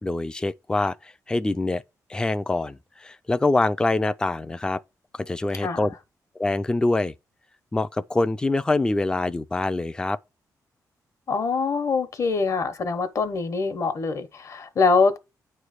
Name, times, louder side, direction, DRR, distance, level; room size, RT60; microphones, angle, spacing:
voice 1, 0.0-1.8 2.1-4.8 5.1-5.9 6.4-7.1 7.7-10.2, left 2 dB, 10° left, 0.3 m, -25 dB
voice 2, 5.6-5.9 11.3-15.2, left 4 dB, 50° left, 1.1 m, -24 dB
9.3 x 3.2 x 6.6 m
wide cardioid pair, 120°, 7 cm